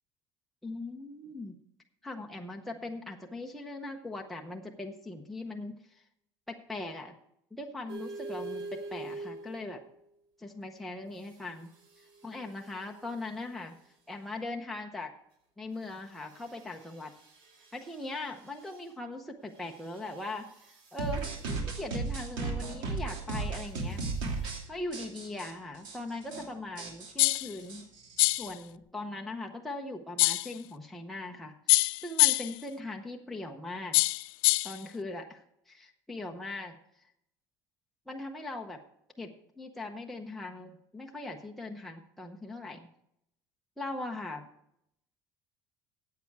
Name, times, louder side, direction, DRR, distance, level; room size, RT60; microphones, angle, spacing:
voice 1, 0.6-1.6 2.0-6.0 6.5-7.1 7.5-9.8 10.4-11.7 12.0-13.8 14.1-15.1 15.6-17.1 17.7-21.3 21.6-24.0 24.7-27.9 28.4-31.5 32.0-34.0 34.6-36.8 38.1-38.8 39.2-42.9 43.8-44.5, left 2 dB, ahead, 0 dB, 0.8 m, -40 dB
sound 1, 7.9-10.0 11.1-13.6 15.7-18.9 19.5-21.5 23.9-24.6, right 2 dB, 85° right, 3.6 m, -47 dB
sound 2, 21.0-24.6 24.9-25.5 25.8-26.0 26.2-26.4 26.8-28.5, right 4 dB, 65° right, 2.8 m, -35 dB
sound 3, 27.2-27.5 28.2-28.5 30.2-30.5 31.7-32.6 33.9-34.8, left 22 dB, 80° left, 0.3 m, -24 dB
14.0 x 8.5 x 4.6 m, 0.77 s
cardioid pair, 170°, 8 cm